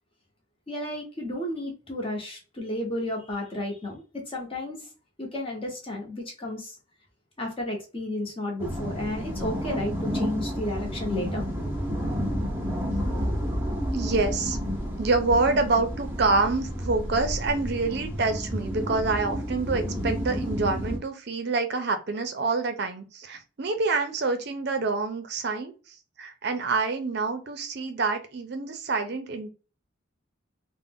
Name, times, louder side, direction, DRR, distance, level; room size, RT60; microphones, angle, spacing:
voice 1, 0.7-4.9 5.2-6.8 7.4-11.4, left 1 dB, 25° left, 0.8 m, -32 dB
sound 1, 8.6-21.0, equal, 10° right, 0.6 m, -30 dB
voice 2, 13.9-14.6 15.0-29.5, right 3 dB, 55° right, 0.4 m, -27 dB
2.4 x 2.1 x 3.4 m
head